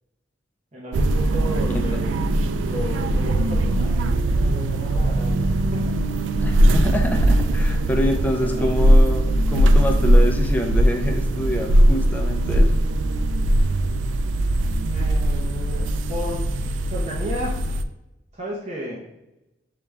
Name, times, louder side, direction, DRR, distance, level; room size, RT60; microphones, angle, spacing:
voice 1, 0.7-2.1 2.5-5.9 8.2-8.8 14.8-16.5 16.9-17.6 18.3-19.0, equal, 35° right, -5 dB, 0.8 m, -33 dB
sound 1, 0.9-17.8, right 1 dB, 80° right, 0.3 m, -20 dB
voice 2, 6.4-12.7, equal, 10° left, 2 dB, 0.5 m, -26 dB
6.7 x 2.3 x 3.2 m, 0.94 s
head